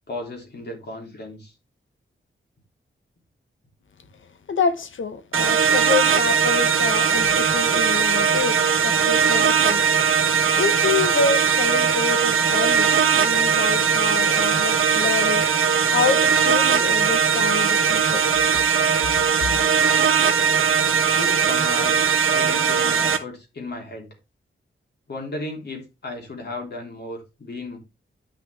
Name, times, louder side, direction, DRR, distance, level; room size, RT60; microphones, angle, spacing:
voice 1, 0.1-1.5 21.0-24.1 25.1-27.8, left 2 dB, 55° left, 3.1 m, -35 dB
voice 2, 4.5-9.9 10.2-15.5 15.9-18.3, left 5 dB, 70° left, 0.9 m, -27 dB
sound 1, 5.3-23.2, right 6 dB, 85° right, 1.3 m, -19 dB
10.0 x 5.8 x 3.4 m
wide cardioid pair, 160°, 21 cm